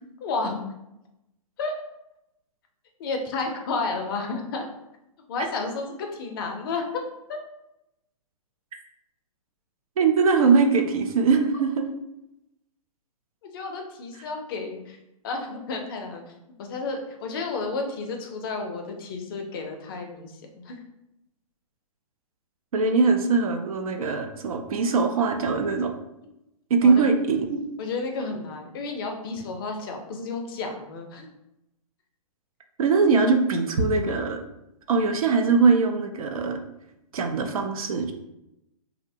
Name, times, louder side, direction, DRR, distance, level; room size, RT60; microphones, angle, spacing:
voice 1, 0.2-0.6 1.6-1.8 3.0-4.7 5.3-7.4 13.5-15.0 15.2-16.3 16.6-20.8 26.8-27.1 27.8-31.3, left 3 dB, 40° left, 3 dB, 0.4 m, -32 dB
voice 2, 10.0-11.8 22.7-25.9 26.7-27.6 32.8-34.4 34.9-36.6 37.1-38.1, right 4 dB, 70° right, 5 dB, 0.4 m, -21 dB
2.7 x 2.1 x 2.6 m, 0.87 s
hypercardioid pair, 135°, 19 cm